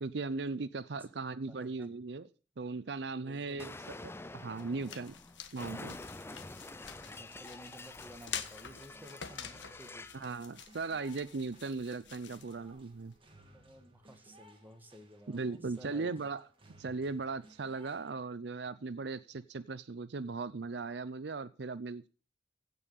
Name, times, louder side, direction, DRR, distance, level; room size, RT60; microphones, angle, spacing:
voice 1, 0.0-2.3 2.6-4.0 4.3-5.1 5.5-6.0 10.1-13.1 15.3-16.4 16.8-22.1, right 4 dB, 65° right, 16 dB, 0.6 m, -38 dB
voice 2, 1.5-2.0 3.2-3.8 6.8-10.3 13.4-16.3, equal, 10° right, 6 dB, 1.8 m, -54 dB
Explosion, 3.6-10.2, left 2 dB, 15° left, 0.5 m, -48 dB
sound 1, 4.2-13.2, left 8 dB, 80° left, 1.5 m, -48 dB
sound 2, 8.6-18.1, right 1 dB, 30° right, 2.5 m, -62 dB
16.0 x 5.5 x 8.3 m, 0.38 s
head